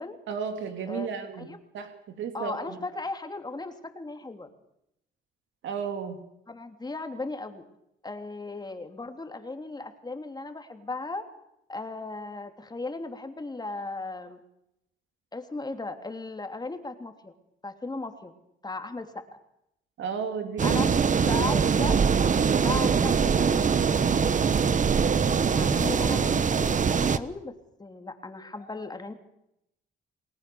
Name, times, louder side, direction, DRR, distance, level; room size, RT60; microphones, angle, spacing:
voice 1, 0.3-1.5 1.7-1.9 2.2-2.8 5.6-6.2 20.0-20.9 21.1-21.3, right 6 dB, 75° right, 6 dB, 3.1 m, -33 dB
voice 2, 2.3-4.5 6.5-7.6 8.0-11.2 11.7-14.4 15.3-17.3 17.6-18.3 18.6-19.2 20.6-22.0 22.5-24.3 25.5-27.5 27.8-29.1, left 3 dB, 20° left, 6 dB, 3.0 m, -36 dB
sound 1, 20.6-27.2, right 6 dB, 40° right, 1.2 m, -23 dB
30.0 x 19.5 x 7.0 m, 0.82 s
cardioid pair, 90°, 20 cm